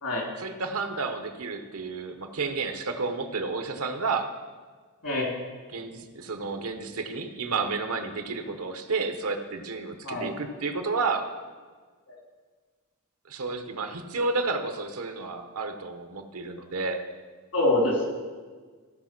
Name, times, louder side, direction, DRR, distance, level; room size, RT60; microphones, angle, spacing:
voice 1, 0.4-4.3 5.7-11.3 13.3-17.0, right 4 dB, 75° right, 6 dB, 1.0 m, -31 dB
voice 2, 17.5-18.1, left 2 dB, 75° left, -2 dB, 3.1 m, -25 dB
15.0 x 5.1 x 6.0 m, 1.5 s
head